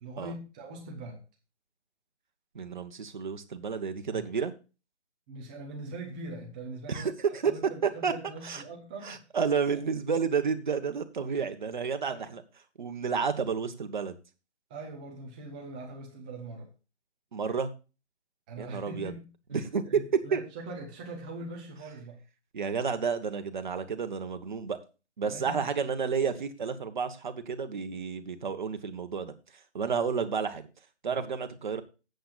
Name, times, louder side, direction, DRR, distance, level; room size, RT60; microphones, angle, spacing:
voice 1, 0.0-1.2 4.1-4.3 5.3-7.1 7.4-9.2 9.7-9.8 12.1-12.3 14.7-16.7 18.5-19.3 19.8-22.2 25.2-25.6 29.8-30.0 31.1-31.2, right 2 dB, 5° right, 2 dB, 0.8 m, -42 dB
voice 2, 2.5-4.5 6.9-7.5 7.8-8.1 8.4-8.6 9.0-12.4 12.8-14.2 17.3-17.7 18.6-19.1 19.5-20.0 20.3-20.5 22.5-24.8 25.2-30.7 31.0-31.8, right 6 dB, 45° right, 8 dB, 1.3 m, -31 dB
18.5 x 7.9 x 2.5 m, 0.32 s
figure-of-eight pair, 155°, 34 cm